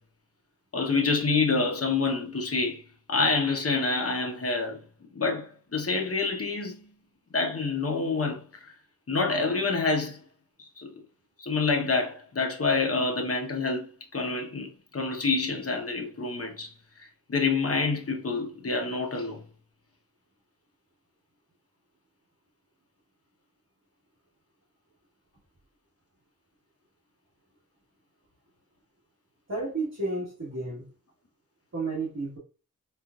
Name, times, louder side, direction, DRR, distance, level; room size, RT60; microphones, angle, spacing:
voice 1, 0.7-2.8 3.1-4.8 5.1-6.8 7.3-8.4 9.1-10.2 10.8-10.9 11.4-16.7 17.3-19.4, left 4 dB, 40° left, 0.9 m, -27 dB
voice 2, 29.5-30.9 31.7-32.4, right 3 dB, 45° right, 1.4 m, -32 dB
4.4 x 2.5 x 2.3 m
wide cardioid pair, 75°, 36 cm